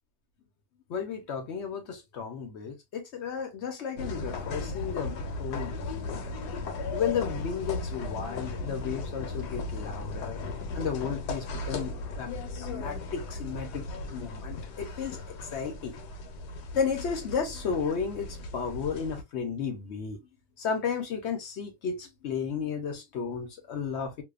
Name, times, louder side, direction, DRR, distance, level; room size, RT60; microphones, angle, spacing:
voice 1, 0.9-6.2 6.9-10.4 10.7-16.0 16.7-20.2 20.6-24.2, left 6 dB, 60° left, 0.7 m, -33 dB
sound 1, 4.0-19.2, left 3 dB, 80° left, 1.2 m, -36 dB
2.7 x 2.2 x 2.3 m
omnidirectional pair, 1.7 m